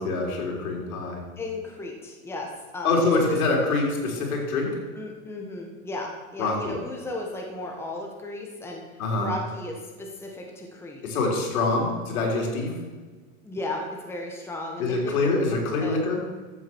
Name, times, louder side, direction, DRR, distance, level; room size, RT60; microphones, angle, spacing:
voice 1, 0.0-1.2 2.8-4.8 6.4-6.7 9.0-9.3 11.0-12.7 14.8-16.2, left 3 dB, 80° left, 0 dB, 4.1 m, -25 dB
voice 2, 1.4-2.9 4.9-8.8 9.2-11.0 13.4-15.3 15.8-16.0, left 2 dB, 5° left, 0 dB, 1.4 m, -35 dB
14.5 x 7.7 x 6.3 m, 1.4 s
supercardioid pair, 150°, 42 cm